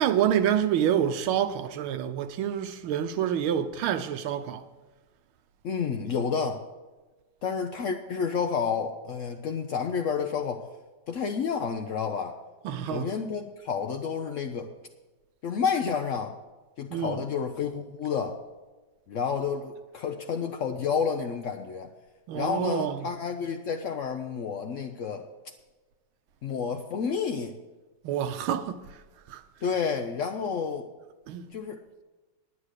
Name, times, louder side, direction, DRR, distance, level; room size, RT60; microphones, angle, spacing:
voice 1, 0.0-4.7 12.6-13.1 16.9-17.2 22.3-23.1 28.0-28.8 29.3-29.4 31.3-31.5, right 9 dB, 85° right, 1.6 m, -27 dB
voice 2, 5.6-6.6 7.4-10.6 11.1-12.4 12.9-14.7 15.4-16.4 16.8-18.4 19.1-21.9 22.3-25.3 26.4-27.5 29.6-30.9 31.5-31.8, left 6 dB, 80° left, 0.6 m, -30 dB
9.7 x 9.7 x 6.5 m
omnidirectional pair, 2.2 m